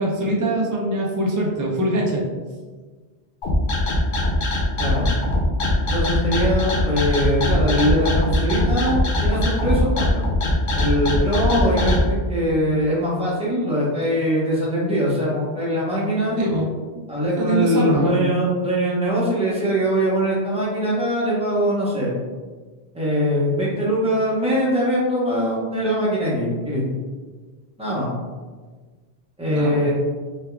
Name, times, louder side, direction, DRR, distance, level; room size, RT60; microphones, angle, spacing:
voice 1, 0.0-2.2 16.4-16.7 16.9-17.0 17.4-18.1 29.5-29.9, right 1 dB, 30° right, -3 dB, 0.3 m, -22 dB
sound 1, 3.4-12.0, left 1 dB, 60° left, 0.8 m, -21 dB
voice 2, 4.8-5.1 5.8-10.2 10.7-12.0 12.3-16.4 17.1-22.1 22.9-26.8 27.8-28.1 29.4-29.9, equal, 5° right, -7 dB, 0.8 m, -22 dB
3.5 x 3.1 x 2.2 m, 1.4 s
omnidirectional pair, 1.1 m